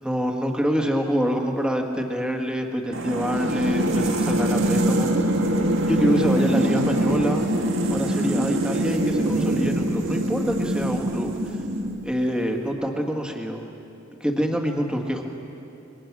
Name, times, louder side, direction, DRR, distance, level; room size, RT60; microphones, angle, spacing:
voice 1, 0.0-5.1 5.8-7.5 7.9-11.3 12.0-13.7 14.2-15.3, equal, 5° right, 2 dB, 1.9 m, -26 dB
sound 1, 2.9-12.3, right 1 dB, 80° right, 2.0 m, -23 dB
27.5 x 22.0 x 6.2 m, 2.9 s
head